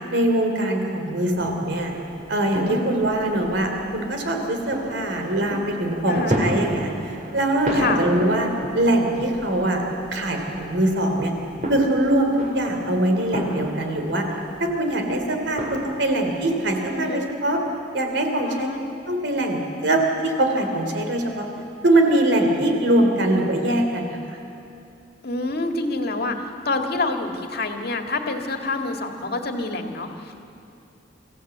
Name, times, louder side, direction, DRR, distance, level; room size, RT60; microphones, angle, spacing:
voice 1, 0.1-2.0 2.3-8.5 8.7-9.8 10.1-11.3 11.7-14.2 14.6-17.6 17.9-18.7 19.1-21.5 21.8-24.4, right 1 dB, 70° right, 3 dB, 3.2 m, -22 dB
sound 1, 1.3-16.8, right 1 dB, 45° right, 3.5 m, -33 dB
voice 2, 2.7-3.0 6.0-6.4 7.7-8.0 16.9-17.3 18.4-18.8 25.2-26.4 26.7-30.3, left 3 dB, 60° left, 4 dB, 1.9 m, -27 dB
25.0 x 15.0 x 8.1 m, 2.7 s
head